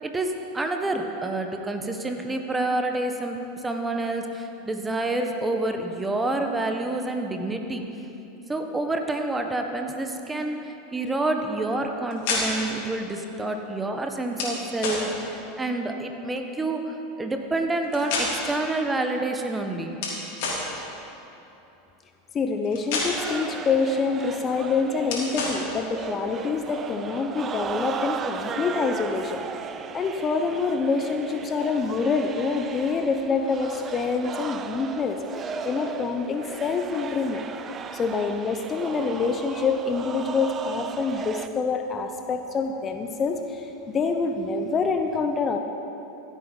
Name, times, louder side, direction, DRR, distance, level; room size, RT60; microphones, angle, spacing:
voice 1, 0.0-3.4 3.6-7.9 8.5-20.0, right 2 dB, 15° right, 4 dB, 1.2 m, -28 dB
sound 1, 12.1-12.7 14.3-15.0 17.8-18.7 20.0-20.7 22.6-23.3 25.1-25.6, left 3 dB, 60° left, 3.2 m, -28 dB
voice 2, 22.3-29.4 29.9-37.4 37.9-45.6, left 4 dB, 30° left, 6 dB, 0.8 m, -26 dB
sound 2, 23.2-41.5, right 6 dB, 30° right, 0.6 m, -36 dB
15.0 x 8.3 x 5.3 m, 2.9 s
hypercardioid pair, 90°, 0 cm